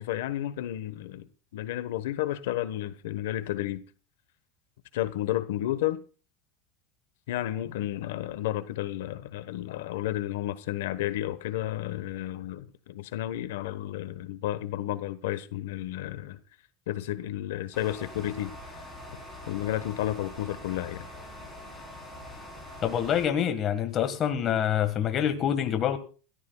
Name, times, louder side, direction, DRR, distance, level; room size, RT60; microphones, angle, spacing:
voice 1, 0.0-3.8 4.9-6.0 7.3-16.4 16.9-18.7 19.5-21.1, left 13 dB, 85° left, 1.2 m, -32 dB
sound 1, 17.7-23.3, left 1 dB, 5° left, 3.8 m, -44 dB
voice 2, 22.8-26.0, left 9 dB, 25° left, 1.6 m, -26 dB
28.0 x 13.0 x 2.3 m
supercardioid pair, 180°, 0 cm